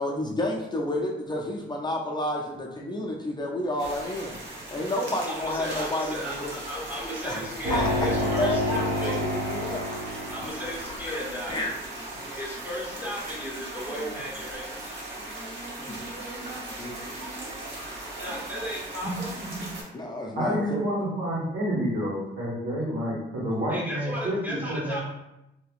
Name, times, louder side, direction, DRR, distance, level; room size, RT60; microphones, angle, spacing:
voice 1, 0.0-4.4 4.7-6.6 7.2-7.4 7.7-9.2 9.5-9.8 10.2-10.3 10.8-11.2 11.5-11.7 15.8-16.0 16.8-17.2 19.9-20.9, left 1 dB, 20° left, -1 dB, 0.5 m, -30 dB
voice 2, 2.9-3.4 4.5-9.2 10.3-11.6 12.1-14.9 17.7-19.3 23.7-25.0, equal, 10° right, -6 dB, 1.4 m, -36 dB
sound 1, 3.8-19.8, right 2 dB, 70° right, 1.0 m, -38 dB
sound 2, 7.6-11.1, left 1 dB, 45° right, 0.9 m, -29 dB
voice 3, 20.3-25.0, equal, 85° right, -6 dB, 1.5 m, -29 dB
3.2 x 2.8 x 2.4 m, 0.90 s
cardioid pair, 90°, 20 cm